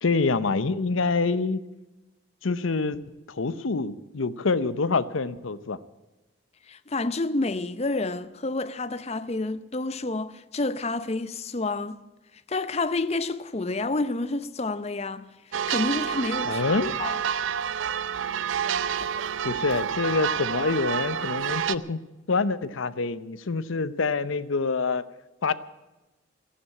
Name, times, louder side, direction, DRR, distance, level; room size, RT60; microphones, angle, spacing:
voice 1, 0.0-1.6 2.4-5.8 16.4-16.9 19.4-22.0 22.3-25.0 25.4-25.5, left 4 dB, 85° left, 0.7 m, -26 dB
voice 2, 6.7-12.0 12.5-16.6 17.0-17.2, left 2 dB, 30° left, 0.6 m, -29 dB
sound 1, 15.5-21.7, right 8 dB, 80° right, 0.5 m, -28 dB
14.0 x 11.5 x 8.6 m
head